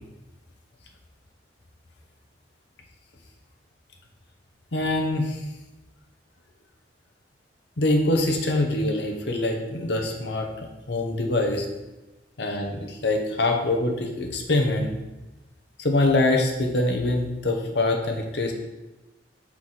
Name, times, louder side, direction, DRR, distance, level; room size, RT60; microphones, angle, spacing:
voice 1, 4.7-5.4 7.8-10.5 10.9-11.6 12.4-14.9 15.8-18.5, left 2 dB, 65° left, 2 dB, 0.9 m, -24 dB
5.9 x 4.6 x 4.0 m, 1.0 s
head